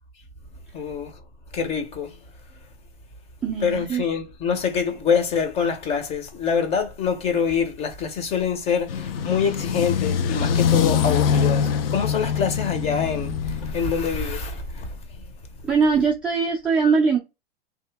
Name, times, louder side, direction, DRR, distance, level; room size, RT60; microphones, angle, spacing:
voice 1, 0.7-1.1 1.5-2.2 3.6-15.0, left 6 dB, 20° left, 0.7 m, -25 dB
voice 2, 3.4-4.0 15.6-17.2, right 5 dB, 5° right, 0.3 m, -21 dB
sound 1, 8.9-13.8, left 7 dB, 70° left, 0.7 m, -23 dB
2.9 x 2.7 x 3.4 m
hypercardioid pair, 145°, 30 cm